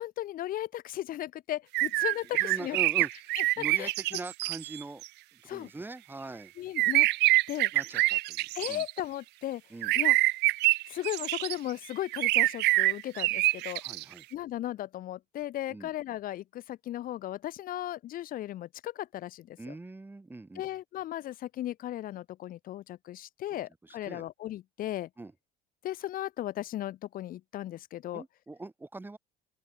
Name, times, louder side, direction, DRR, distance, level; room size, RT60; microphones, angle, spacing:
voice 1, 0.0-2.8 3.4-3.9 5.5-5.7 6.6-7.1 7.5-7.7 8.5-9.6 9.9-10.2 10.9-13.8 14.3-19.7 20.6-25.1 25.8-28.2, left 13 dB, 50° left, 1.9 m, -36 dB
sound 1, 1.7-5.1 6.8-9.0 9.8-11.5 12.1-14.0, right 20 dB, 70° right, 1.1 m, -26 dB
voice 2, 2.4-3.1 3.6-5.0 5.5-6.5 7.7-8.8 9.7-9.9 13.8-14.2 15.7-15.9 19.6-20.6 23.5-24.2 25.2-25.3 28.1-29.2, right 2 dB, 10° right, 4.8 m, -42 dB
open air
cardioid pair, 135°, 18 cm